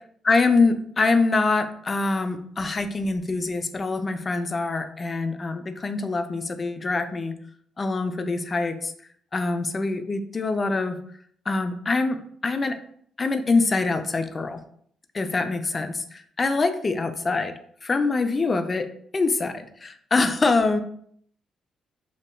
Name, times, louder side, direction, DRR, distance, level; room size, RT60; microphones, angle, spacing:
voice 1, 0.3-7.3 7.8-8.9 9.3-11.0 11.5-12.2 12.4-12.8 13.2-14.6 15.1-17.5 17.8-18.9 19.1-20.8, left 3 dB, 35° left, 8 dB, 0.3 m, -24 dB
3.5 x 2.4 x 2.2 m, 0.64 s
cardioid pair, 90°, 0 cm